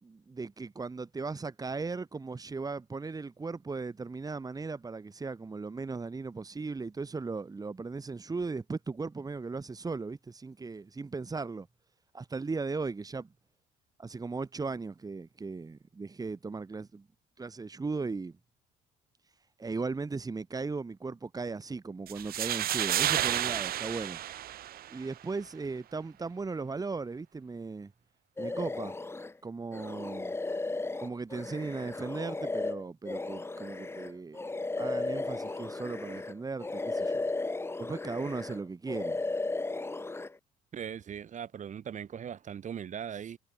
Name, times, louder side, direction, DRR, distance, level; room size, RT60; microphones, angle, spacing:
voice 1, 0.0-11.7 12.1-13.3 14.0-17.1 17.4-18.4 19.6-24.2 24.9-27.9 28.4-29.0 29.4-30.3 31.0-34.4 34.8-37.2 37.8-39.2, right 4 dB, 20° right, 4.2 m, -37 dB
sound 1, 22.1-25.1, right 12 dB, 65° right, 2.1 m, -31 dB
sound 2, 28.4-29.3 29.7-36.3 36.6-38.6 38.9-40.3, left 3 dB, 15° left, 2.3 m, -35 dB
voice 2, 40.7-43.4, right 8 dB, 45° right, 4.5 m, -39 dB
cardioid pair, 110°, 17 cm